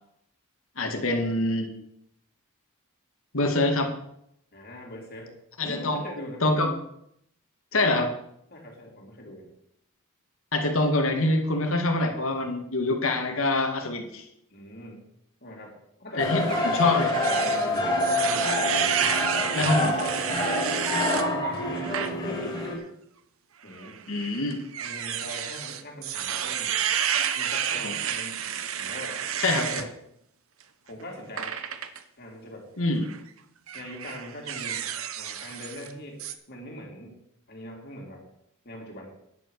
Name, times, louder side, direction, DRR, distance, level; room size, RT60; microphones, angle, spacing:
voice 1, 0.8-1.7 3.3-3.9 5.6-6.0 6.4-6.7 7.7-8.1 10.5-14.2 16.2-17.1 19.6-19.9 24.1-24.6 27.8-27.9 29.4-29.8 32.8-33.1, left 2 dB, 65° left, 4 dB, 2.0 m, -25 dB
voice 2, 4.5-6.4 8.5-9.5 14.5-15.1 15.4-16.5 17.4-18.6 19.3-19.8 21.1-22.8 23.6-24.0 24.8-26.8 27.3-28.5 28.8-29.2 29.6-29.9 30.8-31.6 32.2-32.7 33.7-36.2 36.5-37.2 37.5-38.3 38.6-39.1, left 1 dB, 45° left, -1 dB, 3.4 m, -42 dB
sound 1, 16.2-22.8, left 1 dB, 20° left, 3.2 m, -26 dB
sound 2, 16.5-21.3 21.8-22.1 22.6-22.7 23.7-29.9 31.4-32.0 33.0-33.2 33.7-35.9 36.2-36.3, right 9 dB, 70° right, 0.9 m, -30 dB
10.5 x 8.0 x 6.5 m, 0.74 s
head